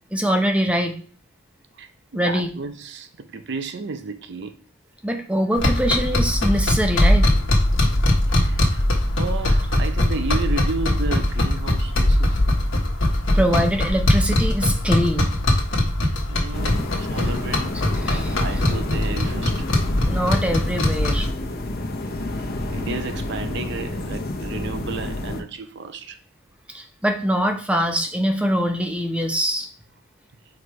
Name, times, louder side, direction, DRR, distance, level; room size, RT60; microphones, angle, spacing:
voice 1, 0.1-0.9 2.1-2.5 5.0-7.3 13.3-15.3 18.0-18.4 20.0-21.3 26.7-29.7, equal, 5° right, 0.7 m, -23 dB
voice 2, 1.8-4.6 8.3-8.9 9.2-12.4 16.3-17.7 18.0-19.7 22.7-26.2, right 4 dB, 55° right, 0.6 m, -32 dB
sound 1, 5.6-21.3, left 1 dB, 70° left, 1.2 m, -21 dB
sound 2, 16.5-25.4, left 1 dB, 50° left, 0.8 m, -29 dB
4.9 x 4.2 x 4.7 m
head